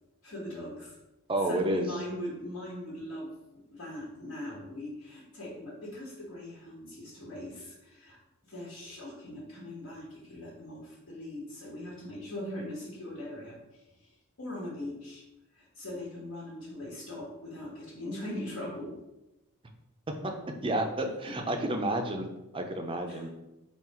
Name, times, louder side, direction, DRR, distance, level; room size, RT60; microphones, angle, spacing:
voice 1, 0.2-1.0 1.4-8.2 8.4-13.8 14.4-15.2 15.5-19.0 23.1-23.3, left 1 dB, 75° left, -7 dB, 1.3 m, -40 dB
voice 2, 1.3-1.9 20.2-20.3 20.6-22.3 22.5-23.3, right 1 dB, 25° right, 3 dB, 0.4 m, -30 dB
3.8 x 2.4 x 4.2 m, 0.96 s
head